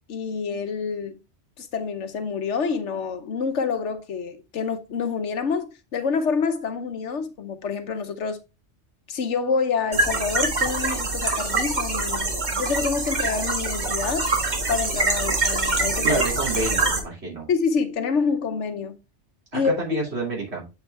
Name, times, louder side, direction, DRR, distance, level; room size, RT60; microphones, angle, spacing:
voice 1, 0.1-1.2 1.6-8.4 9.1-14.3 14.7-16.2 17.5-19.0 19.5-19.8, left 5 dB, 90° left, 1.3 m, -27 dB
sound 1, 9.9-17.0, right 3 dB, 40° right, 1.5 m, -24 dB
voice 2, 16.0-17.5 19.5-20.6, right 3 dB, 65° right, 3.4 m, -28 dB
8.0 x 4.7 x 3.4 m
omnidirectional pair, 1.2 m